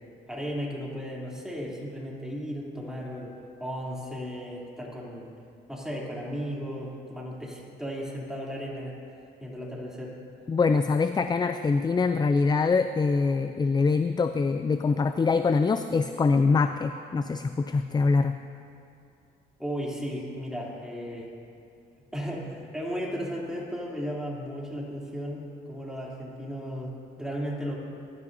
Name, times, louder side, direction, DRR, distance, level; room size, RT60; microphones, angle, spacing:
voice 1, 0.3-3.3 3.6-5.3 5.7-8.9 9.4-10.1 19.6-21.3 22.1-27.8, equal, 5° right, -4 dB, 3.1 m, -35 dB
voice 2, 10.5-18.4, left 4 dB, 20° left, 9 dB, 0.4 m, -24 dB
20.5 x 12.5 x 2.7 m, 2.5 s
cardioid pair, 90°, 20 cm